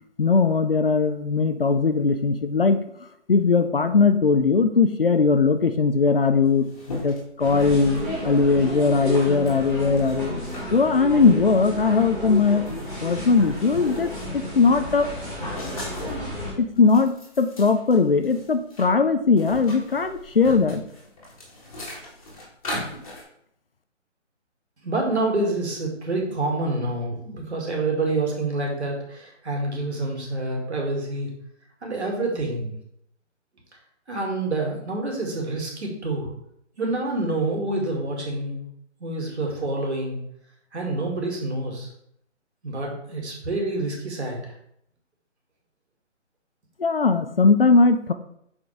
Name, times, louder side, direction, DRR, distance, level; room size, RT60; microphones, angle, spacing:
voice 1, 0.2-2.8 3.3-10.3 10.7-12.7 13.0-15.1 16.6-20.8 46.8-48.1, left 4 dB, 50° left, 9 dB, 0.5 m, -20 dB
sound 1, 6.0-6.1 6.2-8.2 8.8-8.9 9.5-10.7 11.2-11.4 12.0-12.1 12.4-14.3 14.6-16.3 16.7-18.9 19.2-23.2, left 1 dB, 30° left, 1.7 m, -39 dB
sound 2, 7.4-16.5, equal, 5° left, 0.9 m, -32 dB
voice 2, 24.8-31.3 31.8-32.7 34.1-36.3 36.8-38.6 39.0-40.2 40.7-41.9 42.6-44.5, right 2 dB, 60° right, -1 dB, 2.3 m, -27 dB
6.1 x 5.3 x 3.4 m, 0.71 s
hypercardioid pair, 175°, 37 cm